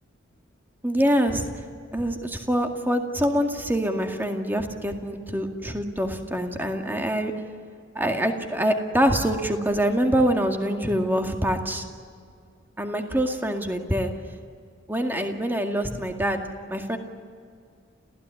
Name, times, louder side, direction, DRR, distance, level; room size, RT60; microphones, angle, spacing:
voice 1, 0.8-1.5 1.9-7.3 8.0-11.8 12.8-14.1 14.9-16.4 16.7-17.0, equal, 10° right, 4 dB, 2.1 m, -25 dB
30.0 x 15.5 x 9.9 m, 2.2 s
head